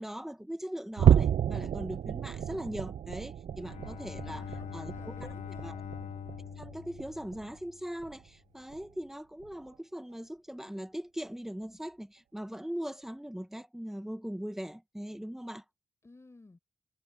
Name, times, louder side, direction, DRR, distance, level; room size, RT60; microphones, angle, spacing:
voice 1, 0.0-4.4 4.7-5.1 5.6-5.8 6.6-15.6, equal, 5° right, 0.9 m, -40 dB
sound 1, 1.0-7.6 8.0-8.3 8.7-8.8 9.4-9.5, right 9 dB, 55° right, 0.5 m, -30 dB
Bowed string instrument, 3.5-8.0, left 8 dB, 85° left, 2.3 m, -43 dB
voice 2, 4.3-5.8 16.0-16.6, left 3 dB, 20° left, 5.2 m, -55 dB
wide cardioid pair, 165°, 13 cm